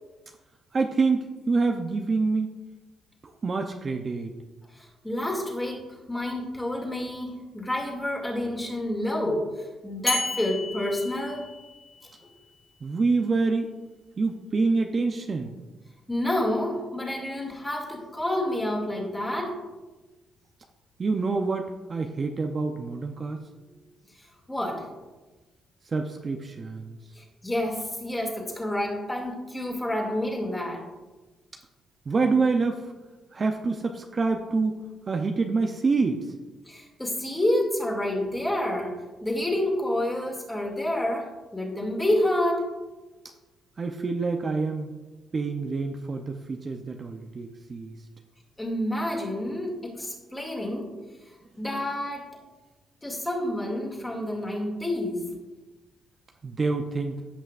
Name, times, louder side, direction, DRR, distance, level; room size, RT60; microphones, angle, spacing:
voice 1, 0.7-2.5 3.2-4.3 12.8-13.7 14.2-15.5 21.0-23.4 25.8-27.0 32.1-32.9 33.3-34.8 35.1-36.3 43.8-44.9 45.3-48.0 56.4-57.2, right 4 dB, 35° right, 4 dB, 0.6 m, -26 dB
voice 2, 4.7-11.5 16.1-19.6 24.5-24.9 27.2-30.8 36.7-42.7 48.6-50.9 51.6-52.2 53.0-55.2, left 1 dB, 10° left, -1 dB, 2.3 m, -29 dB
sound 1, 10.1-12.1, left 2 dB, 30° left, 1.8 m, -32 dB
14.5 x 5.6 x 2.5 m, 1.2 s
cardioid pair, 90°, 0 cm